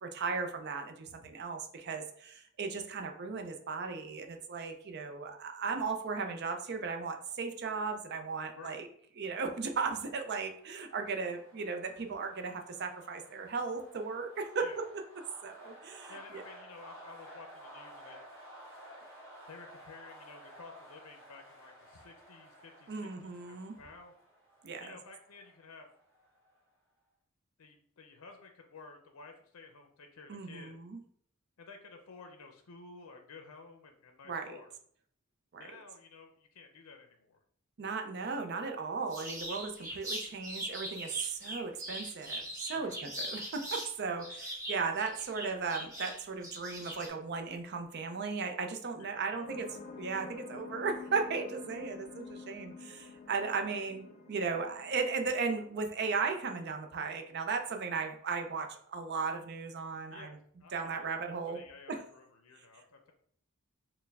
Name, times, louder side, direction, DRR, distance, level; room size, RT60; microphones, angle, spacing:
voice 1, 0.0-8.9 9.2-14.9 15.4-16.4 22.9-23.7 24.6-25.0 30.3-31.0 34.3-34.6 35.5-35.7 37.8-49.7 49.9-60.4 60.7-61.6 61.9-62.0, right 4 dB, 50° right, 5 dB, 0.5 m, -36 dB
sound 1, 10.1-26.6, equal, 10° left, 1.4 m, -54 dB
voice 2, 16.1-18.2 19.5-24.1 24.8-25.9 27.6-30.7 31.6-34.7 35.6-37.4 42.7-43.0 48.9-49.6 60.1-63.1, left 4 dB, 85° left, 4 dB, 0.5 m, -53 dB
sound 2, 39.1-43.9 44.2-47.1, right 1 dB, 15° right, 1.2 m, -40 dB
sound 3, 49.5-56.5, left 4 dB, 40° left, 0.5 m, -49 dB
4.5 x 2.1 x 3.4 m, 0.64 s
head